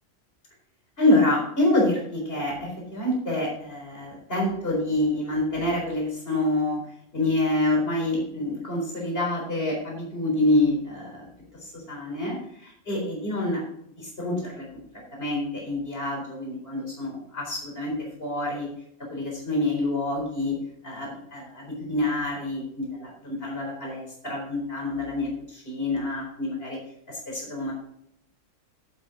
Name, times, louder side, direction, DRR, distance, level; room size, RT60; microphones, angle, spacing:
voice 1, 1.0-6.8 7.1-11.3 11.5-13.6 14.0-14.7 15.2-18.7 19.1-20.6 20.8-26.8 27.1-27.7, left 1 dB, 45° left, -1 dB, 4.3 m, -27 dB
11.5 x 8.3 x 3.8 m, 0.68 s
omnidirectional pair, 1.4 m